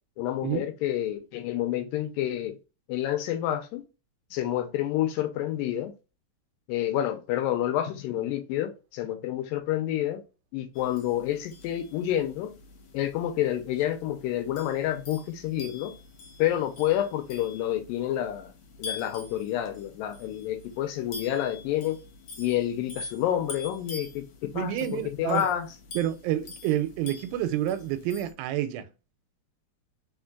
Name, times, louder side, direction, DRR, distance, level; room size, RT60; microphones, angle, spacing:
voice 1, 0.2-2.6 2.9-3.8 4.3-5.9 6.7-10.2 10.5-12.5 12.9-16.0 16.4-18.5 18.8-22.0 22.4-25.7, left 12 dB, 80° left, 2.2 m, -29 dB
sound 1, 10.7-28.3, left 3 dB, 60° left, 1.9 m, -45 dB
voice 2, 24.5-25.5 26.0-28.9, right 12 dB, 85° right, 2.5 m, -29 dB
4.4 x 4.3 x 2.3 m
omnidirectional pair, 4.2 m